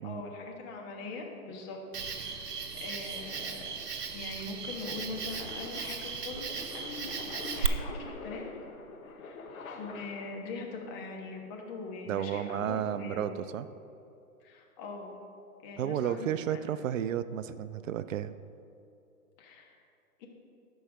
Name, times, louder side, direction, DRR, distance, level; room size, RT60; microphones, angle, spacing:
voice 1, 0.0-1.8 2.2-3.6 4.1-8.6 9.2-9.4 9.7-13.3 14.4-15.1 15.6-16.3 19.4-19.7 20.2-20.3, left 3 dB, 30° left, 1 dB, 1.4 m, -42 dB
Cricket, 1.9-7.7, right 6 dB, 90° right, 0.8 m, -36 dB
sound 1, 3.0-10.6, left 3 dB, 60° left, 1.2 m, -47 dB
voice 2, 12.1-13.7 15.8-18.3, right 10 dB, 60° right, 13 dB, 0.5 m, -32 dB
12.5 x 4.7 x 5.0 m, 2.6 s
hypercardioid pair, 130°, 46 cm